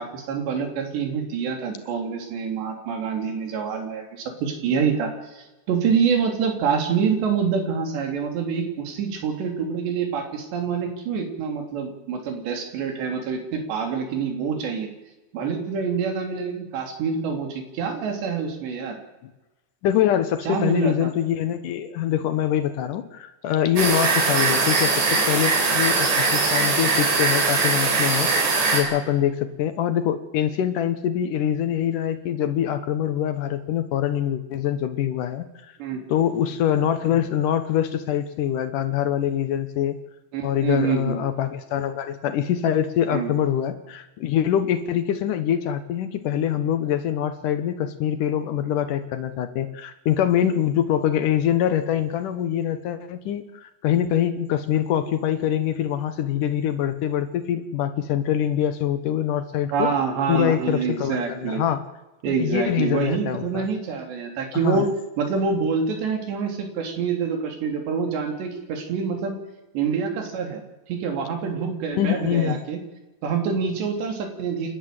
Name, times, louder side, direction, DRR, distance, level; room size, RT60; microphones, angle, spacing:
voice 1, 0.0-14.9 15.3-19.0 20.5-21.1 35.8-36.1 40.3-41.2 43.1-43.3 59.7-61.6 62.2-64.9 65.2-69.4 69.7-70.6 70.9-72.8 73.2-74.7, right 6 dB, 75° right, 4 dB, 5.2 m, -26 dB
voice 2, 19.8-28.3 28.7-35.5 36.1-40.0 40.4-59.9 60.3-61.8 62.3-63.7 64.6-64.9 72.0-72.6, left 10 dB, 70° left, 10 dB, 2.1 m, -24 dB
sound 1, 23.8-28.8, right 4 dB, 90° right, 6.4 m, -21 dB
28.5 x 11.5 x 7.7 m, 1.1 s
omnidirectional pair, 5.1 m